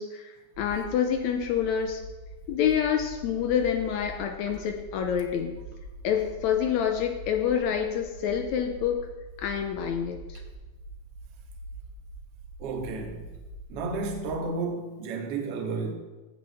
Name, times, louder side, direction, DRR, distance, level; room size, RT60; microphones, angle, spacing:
voice 1, 0.0-2.0 2.5-5.6 6.0-9.1 9.4-10.4, left 8 dB, 75° left, 1.8 m, -27 dB
sound 1, 0.5-14.4, right 1 dB, 40° right, 1.8 m, -44 dB
voice 2, 12.6-13.3 13.7-15.9, right 4 dB, 60° right, 1.9 m, -32 dB
15.5 x 7.1 x 3.5 m
omnidirectional pair, 3.7 m